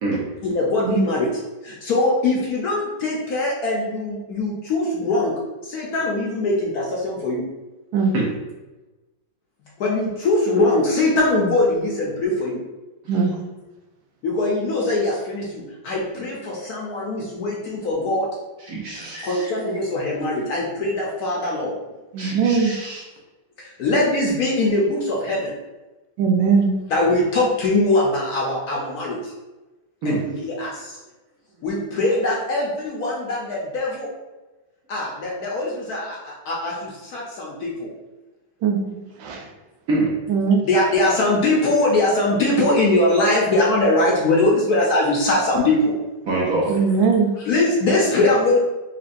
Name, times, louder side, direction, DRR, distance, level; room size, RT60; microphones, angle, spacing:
voice 1, 0.4-1.3 1.6-5.3 5.6-7.4 9.8-12.6 14.2-18.3 18.9-21.7 23.6-25.5 26.9-29.3 30.0-31.0 31.6-34.1 34.9-37.9 40.6-45.9 47.4-48.6, left 2 dB, 65° left, -3 dB, 1.0 m, -22 dB
voice 2, 18.6-19.5 22.2-23.0 30.0-30.2 38.8-39.0 39.9-40.1 46.2-46.7, right 2 dB, 60° right, -4 dB, 0.9 m, -25 dB
voice 3, 22.1-22.7 26.2-26.7 38.6-38.8 39.2-39.4 40.3-40.7 46.7-47.3, right 5 dB, 80° right, 2 dB, 1.4 m, -19 dB
4.2 x 3.0 x 2.5 m, 1.1 s
omnidirectional pair, 2.1 m